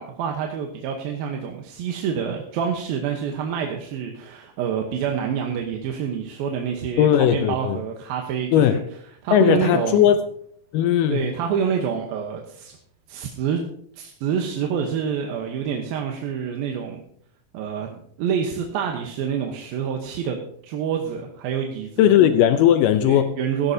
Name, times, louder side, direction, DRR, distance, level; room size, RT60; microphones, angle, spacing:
voice 1, 0.0-8.8 9.2-10.1 11.1-12.8 13.1-13.6 14.0-17.0 17.5-20.4 20.6-22.1 23.0-23.7, right 7 dB, 85° right, 2 dB, 2.9 m, -27 dB
voice 2, 7.0-7.8 8.5-8.8 9.3-10.2 10.7-11.3 22.0-23.4, left 10 dB, 80° left, 10 dB, 2.2 m, -17 dB
15.5 x 14.5 x 2.8 m, 0.66 s
omnidirectional pair, 4.1 m